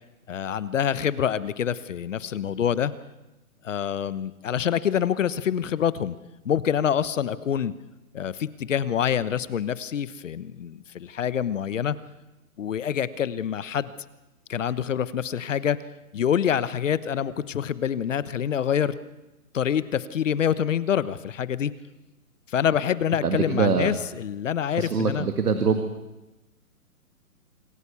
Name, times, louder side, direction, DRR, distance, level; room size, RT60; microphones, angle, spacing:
voice 1, 0.3-2.9 3.6-6.1 6.4-7.7 8.1-12.0 12.6-13.9 14.5-15.8 16.1-18.9 19.5-21.7 22.5-25.3, left 9 dB, 55° left, 16 dB, 1.1 m, -26 dB
voice 2, 23.2-23.9 24.8-25.8, right 5 dB, 90° right, 6 dB, 2.2 m, -23 dB
26.0 x 15.0 x 7.0 m, 1.0 s
hypercardioid pair, 160°, 45 cm